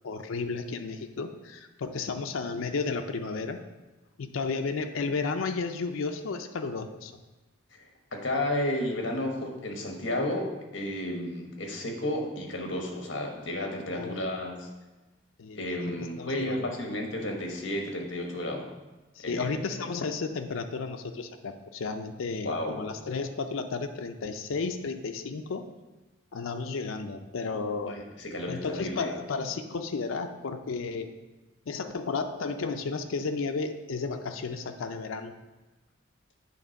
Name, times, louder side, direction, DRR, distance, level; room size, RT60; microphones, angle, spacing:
voice 1, 0.0-3.6 4.2-7.1 13.9-14.2 15.4-15.6 15.9-16.6 19.2-25.7 26.3-28.0 28.5-31.1 31.7-35.3, left 4 dB, 90° left, 5 dB, 0.5 m, -33 dB
voice 2, 8.1-14.7 15.5-18.7 19.2-19.5 22.4-22.8 27.9-29.1, left 1 dB, 65° left, 2 dB, 1.3 m, -32 dB
8.4 x 3.6 x 5.1 m, 1.1 s
head